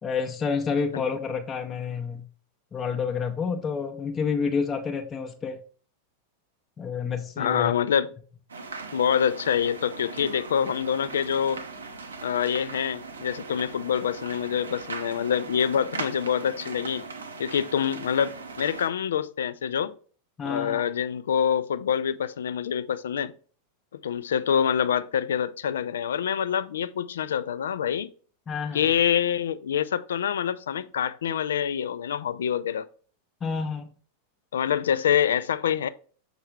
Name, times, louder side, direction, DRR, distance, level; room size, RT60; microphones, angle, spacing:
voice 1, 0.0-2.3 2.7-5.6 6.8-7.7 20.4-20.8 28.5-28.8 33.4-33.9, left 5 dB, 20° left, 0.6 m, -29 dB
voice 2, 7.4-8.1 8.9-11.6 12.2-17.0 17.4-19.9 20.4-23.3 24.0-28.1 28.7-32.9 34.5-35.9, left 8 dB, 65° left, 0.4 m, -26 dB
sound 1, 8.5-18.9, right 4 dB, 70° right, 0.7 m, -39 dB
6.6 x 4.5 x 3.2 m
figure-of-eight pair, 90°, 0 cm